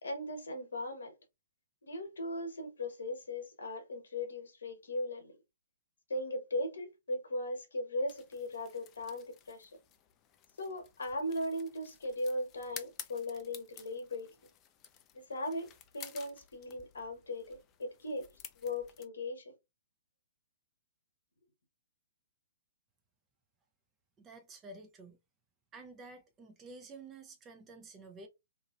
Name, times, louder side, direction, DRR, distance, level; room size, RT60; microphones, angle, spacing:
voice 1, 0.0-1.1 1.8-5.3 6.1-9.7 10.6-14.3 15.1-19.5, left 1 dB, 75° left, 1.0 m, -38 dB
sound 1, 8.1-19.0, left 10 dB, 30° left, 0.4 m, -53 dB
voice 2, 24.2-25.2 25.7-28.3, right 3 dB, 20° right, 0.6 m, -51 dB
2.9 x 2.6 x 2.4 m
figure-of-eight pair, 120°, 0 cm